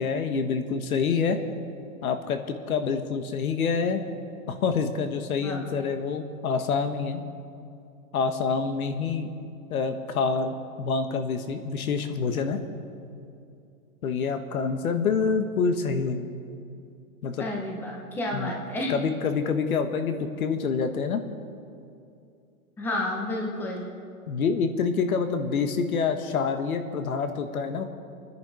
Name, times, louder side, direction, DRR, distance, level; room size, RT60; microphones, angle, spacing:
voice 1, 0.0-1.4 2.0-4.0 4.5-7.2 8.1-9.3 9.7-12.6 14.0-16.3 17.2-17.4 18.3-18.5 18.9-21.2 24.3-27.9, left 5 dB, 70° left, 8 dB, 1.6 m, -27 dB
voice 2, 17.4-19.0 22.8-23.9, left 1 dB, 5° left, -1 dB, 1.1 m, -31 dB
27.5 x 10.5 x 5.0 m, 2.5 s
hypercardioid pair, 165°, 44 cm